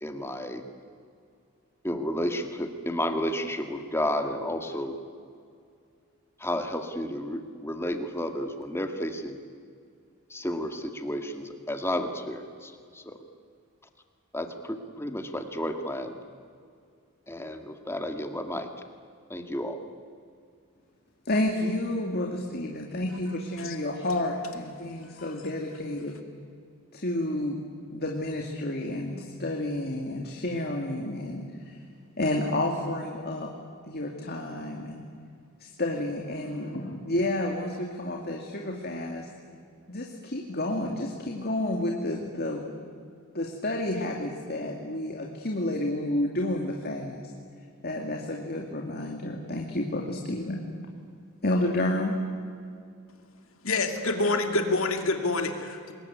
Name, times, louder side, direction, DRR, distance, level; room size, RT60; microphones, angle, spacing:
voice 1, 0.0-0.6 1.8-5.0 6.4-9.4 10.3-13.2 14.3-16.2 17.3-18.7 19.3-19.8, left 1 dB, 10° left, 6 dB, 1.9 m, -32 dB
voice 2, 21.3-26.1 26.9-27.6 27.9-31.8 32.2-33.5 33.9-35.1 35.6-39.3 39.9-42.6 43.3-47.2 47.8-50.6 51.4-52.2, left 1 dB, 45° left, 1 dB, 2.4 m, -30 dB
voice 3, 53.6-55.9, left 2 dB, 65° left, 5 dB, 2.5 m, -27 dB
25.5 x 21.5 x 9.6 m, 2.3 s
head